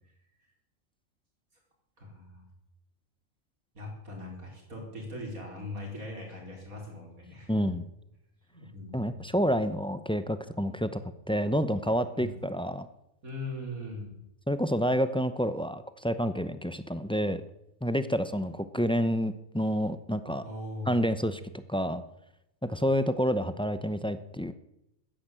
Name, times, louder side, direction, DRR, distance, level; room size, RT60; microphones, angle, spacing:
voice 1, 2.0-2.4 3.7-7.5 8.5-9.3 12.1-12.5 13.2-14.2 20.4-21.1, left 1 dB, 85° right, 0 dB, 5.1 m, -40 dB
voice 2, 7.5-7.8 8.9-11.0 11.3-12.9 14.5-17.4 17.8-20.4 20.9-22.0 22.6-24.5, equal, 5° left, 12 dB, 0.5 m, -28 dB
13.5 x 10.5 x 8.9 m, 0.87 s
omnidirectional pair, 1.4 m